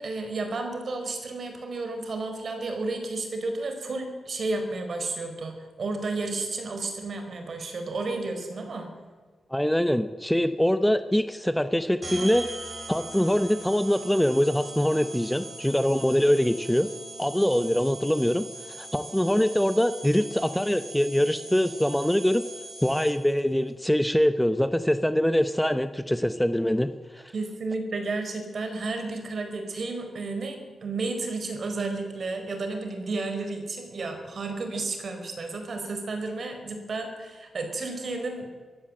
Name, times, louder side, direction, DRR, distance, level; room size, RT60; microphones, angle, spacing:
voice 1, 0.0-8.9 27.3-38.5, right 3 dB, 55° right, 6 dB, 4.4 m, -32 dB
voice 2, 9.5-12.5 12.9-16.9 17.2-22.4 22.8-27.3, equal, 5° left, 10 dB, 0.7 m, -24 dB
sound 1, 12.0-23.4, right 2 dB, 30° right, 4.6 m, -41 dB
23.0 x 15.0 x 7.7 m, 1.4 s
wide cardioid pair, 125°, 0 cm